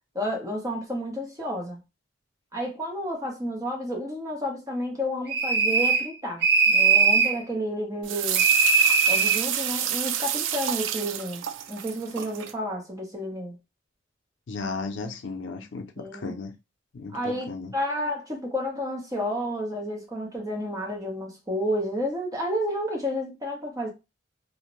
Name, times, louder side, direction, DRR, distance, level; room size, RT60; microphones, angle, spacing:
voice 1, 0.1-1.8 2.5-8.4 9.1-11.4 11.7-13.6 16.0-16.3 17.1-23.9, equal, 20° right, 0.7 m, -31 dB
sound 1, 5.3-6.1 6.4-7.4 8.4-9.4, right 5 dB, 60° right, 0.7 m, -20 dB
sound 2, 8.0-12.5, right 10 dB, 90° right, 0.3 m, -29 dB
voice 2, 14.5-16.5 16.9-17.7, left 4 dB, 80° left, 0.5 m, -35 dB
2.5 x 2.1 x 2.9 m
head